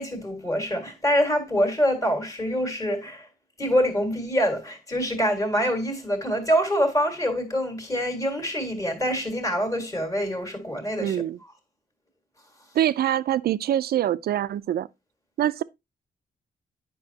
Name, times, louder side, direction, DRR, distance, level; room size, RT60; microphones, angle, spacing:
voice 1, 0.0-3.3 3.6-11.5, equal, 20° left, 1.7 m, -25 dB
voice 2, 11.0-11.4 12.7-14.9 15.4-15.6, right 11 dB, 75° right, 0.4 m, -24 dB
9.7 x 5.4 x 2.8 m
wide cardioid pair, 170°, 16 cm